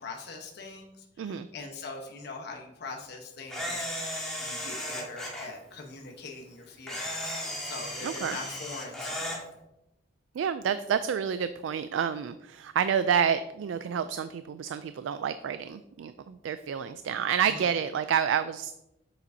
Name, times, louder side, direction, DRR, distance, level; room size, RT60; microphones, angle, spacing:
voice 1, 0.0-3.9 4.4-7.3 7.6-9.4 17.4-17.7, left 3 dB, 60° left, 1 dB, 1.0 m, -42 dB
Camera, 3.5-5.5 6.9-9.4, left 1 dB, 5° left, 1.7 m, -35 dB
voice 2, 8.0-8.4 10.3-18.7, right 8 dB, 80° right, 12 dB, 0.3 m, -29 dB
7.2 x 6.8 x 2.7 m, 0.89 s
head